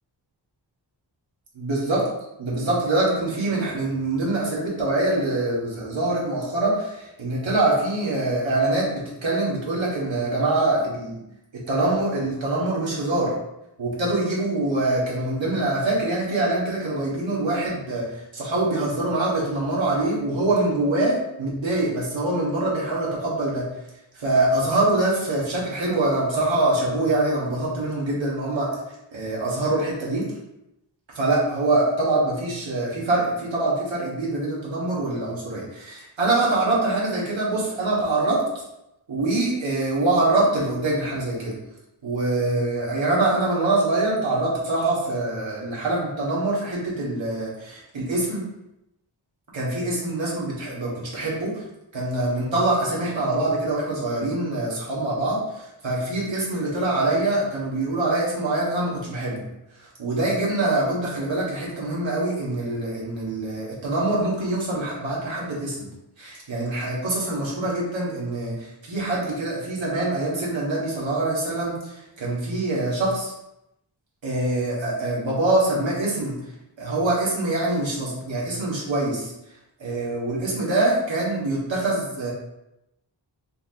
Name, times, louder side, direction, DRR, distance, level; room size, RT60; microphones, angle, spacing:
voice 1, 1.6-2.0 2.4-11.2 11.5-13.3 13.8-23.7 24.1-28.7 29.1-30.2 31.1-38.4 39.1-41.5 42.0-48.4 49.5-51.6 51.9-59.4 60.0-65.9 66.2-73.3 74.2-76.4 76.8-79.3 79.8-82.3, right 2 dB, 90° right, -5 dB, 1.4 m, -24 dB
5.5 x 2.5 x 2.8 m, 0.86 s
wide cardioid pair, 85°, 44 cm